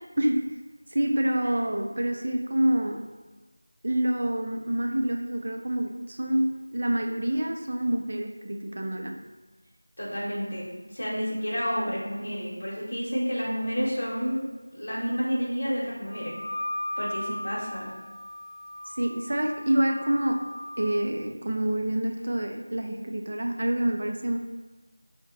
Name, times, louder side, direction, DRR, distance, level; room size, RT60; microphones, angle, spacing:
voice 1, 0.2-0.5 0.9-3.0 3.8-9.2 19.0-20.4 20.8-24.4, right 1 dB, 45° right, 3 dB, 0.3 m, -27 dB
voice 2, 10.0-16.3 17.0-17.9, equal, 45° left, -5 dB, 0.9 m, -30 dB
Wind instrument woodwind instrument, 16.1-21.0, left 1 dB, 15° right, 0.9 m, -37 dB
2.7 x 2.1 x 3.8 m, 1.2 s
figure-of-eight pair, 175°, 0 cm